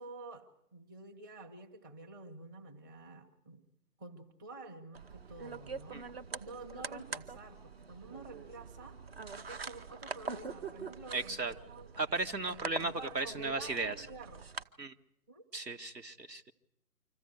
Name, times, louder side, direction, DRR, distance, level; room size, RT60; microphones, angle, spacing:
voice 1, 0.0-3.6 4.0-6.0 6.4-9.0 9.4-11.9 12.5-14.5 15.3-15.4, right 2 dB, 15° right, 4 dB, 1.0 m, -49 dB
sound 1, 4.9-14.6, right 4 dB, 40° right, 0.8 m, -44 dB
voice 2, 11.1-11.5 12.0-14.1 14.8-14.9 15.5-16.5, right 3 dB, 85° right, 7 dB, 1.7 m, -36 dB
25.5 x 15.0 x 9.7 m, 0.78 s
figure-of-eight pair, 145°, 48 cm